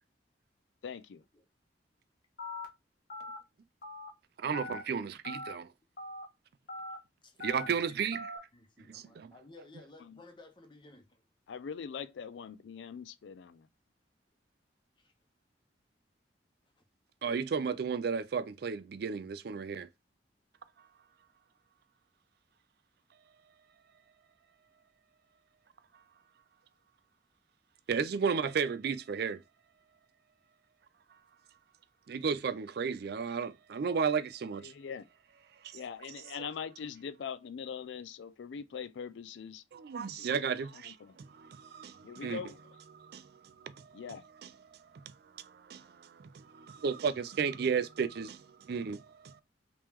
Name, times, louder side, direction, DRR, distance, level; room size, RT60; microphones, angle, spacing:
voice 1, 0.8-1.2 10.0-10.2 11.5-13.7 34.6-35.1 35.7-39.6 40.0-40.4 40.7-41.2 42.0-42.6 43.9-44.3, left 6 dB, 80° left, 0.4 m, -42 dB
Telephone, 2.4-2.7 3.1-3.4 3.8-4.1 4.5-4.8 5.2-5.5 6.0-6.2 6.7-7.0 7.4-7.7 8.1-8.4, left 2 dB, 55° left, 1.0 m, -41 dB
voice 2, 4.4-5.7 7.4-8.3 8.9-9.3 17.2-19.9 27.9-29.4 32.1-34.7 35.6-35.8 39.7-42.4 42.9-44.0 44.9-49.4, right 6 dB, 60° right, 0.4 m, -34 dB
voice 3, 7.2-8.0 8.5-11.2 15.0-15.1, left 2 dB, 25° left, 0.7 m, -55 dB
3.0 x 3.0 x 3.4 m
head